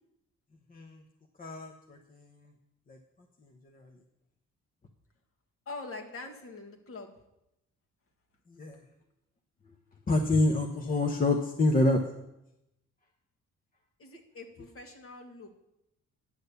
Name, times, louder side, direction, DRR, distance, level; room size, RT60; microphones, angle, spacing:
voice 1, 0.7-1.0 1.4-2.5 2.9-3.0 3.7-3.8 8.5-8.8 10.1-12.0, left 2 dB, 30° left, 3 dB, 1.0 m, -27 dB
voice 2, 5.7-7.1 14.0-15.5, left 3 dB, 45° left, 3 dB, 1.9 m, -44 dB
10.5 x 6.4 x 6.9 m, 0.87 s
cardioid pair, 90°, 30 cm